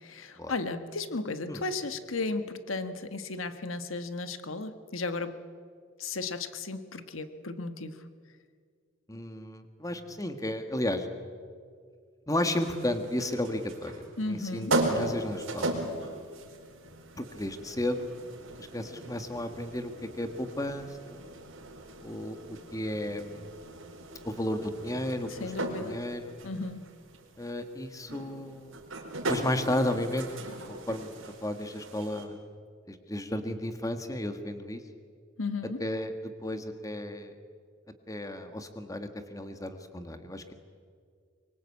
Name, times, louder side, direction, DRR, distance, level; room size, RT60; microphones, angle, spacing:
voice 1, 0.0-5.4 6.0-8.1 14.2-14.8 25.3-26.0 26.4-26.9 35.4-35.8, left 3 dB, 90° left, 10 dB, 1.5 m, -35 dB
voice 2, 9.1-11.1 12.3-15.8 17.2-18.0 18.6-19.9 20.2-21.2 22.0-22.4 22.7-23.4 24.2-25.5 25.8-26.3 27.4-28.7 29.3-31.1 31.4-32.4 32.9-34.8 35.8-37.3 38.1-40.5, left 1 dB, 15° left, 8 dB, 1.6 m, -33 dB
sound 1, 12.5-32.2, right 2 dB, 90° right, 4.6 m, -37 dB
24.0 x 24.0 x 8.5 m, 2.1 s
head